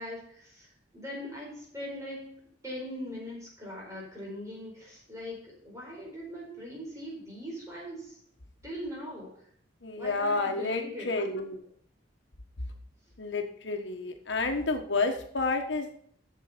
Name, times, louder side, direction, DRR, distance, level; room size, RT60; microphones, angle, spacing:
voice 1, 0.0-8.2 8.6-9.4 10.0-11.1, equal, 15° right, -3 dB, 4.7 m, -41 dB
voice 2, 9.8-11.6 13.2-16.0, left 3 dB, 75° left, 4 dB, 1.3 m, -30 dB
8.4 x 6.8 x 6.8 m, 0.62 s
head